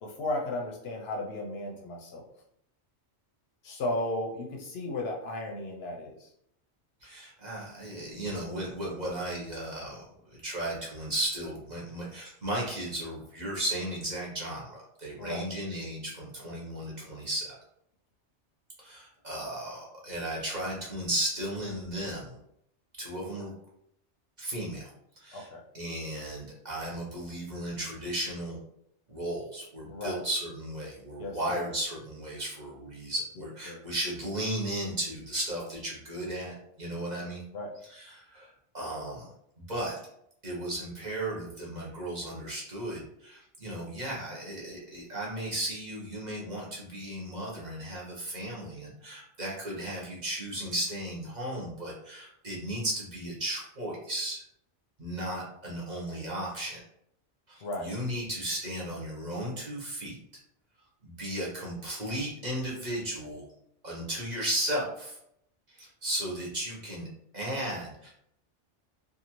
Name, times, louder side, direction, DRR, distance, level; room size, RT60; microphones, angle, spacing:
voice 1, 0.0-2.2 3.6-6.3 15.2-15.4 25.3-25.6 29.9-30.2 31.2-31.7 33.7-33.8 37.5-37.7 57.6-57.9, left 1 dB, 65° left, 0 dB, 0.7 m, -35 dB
voice 2, 7.0-17.5 18.8-22.4 23.0-23.5 24.4-24.9 25.2-25.5 25.7-28.6 29.1-37.4 37.8-38.5 38.7-39.3 39.7-40.0 40.4-54.4 55.0-56.8 57.5-60.2 61.0-63.5 63.8-65.2 65.7-67.1 67.3-68.1, right 1 dB, 40° right, -4 dB, 0.9 m, -35 dB
2.6 x 2.4 x 2.9 m, 0.73 s
omnidirectional pair, 1.2 m